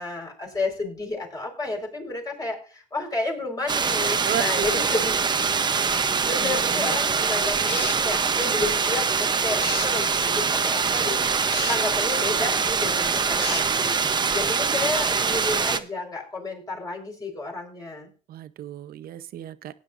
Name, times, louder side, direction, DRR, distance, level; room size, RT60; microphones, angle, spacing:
voice 1, 0.0-5.3 6.2-11.4 11.7-14.0 14.3-18.1, left 2 dB, 20° left, 0 dB, 4.7 m, -31 dB
sound 1, 3.7-15.8, right 5 dB, 25° right, 0.8 m, -24 dB
voice 2, 4.2-4.7 6.4-7.0 18.3-19.7, right 11 dB, 60° right, 13 dB, 0.8 m, -33 dB
sound 2, 7.6-8.0 9.6-9.9 11.5-11.8 13.4-13.7, left 8 dB, 70° left, 1.3 m, -33 dB
18.0 x 9.8 x 2.6 m, 0.37 s
cardioid pair, 110°, 17 cm